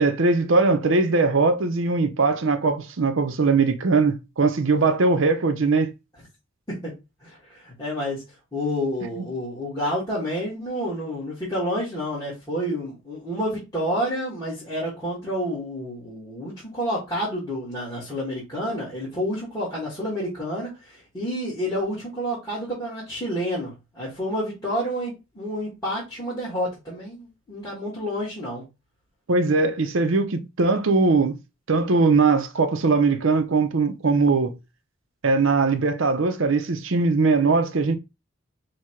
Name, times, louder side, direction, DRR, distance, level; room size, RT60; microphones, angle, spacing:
voice 1, 0.0-5.9 9.2-9.3 29.3-31.4 31.7-34.5 35.2-38.0, right 3 dB, 65° right, 0.6 m, -20 dB
voice 2, 7.2-8.2 8.5-28.6, equal, 15° left, 1.7 m, -29 dB
4.6 x 2.3 x 4.4 m
head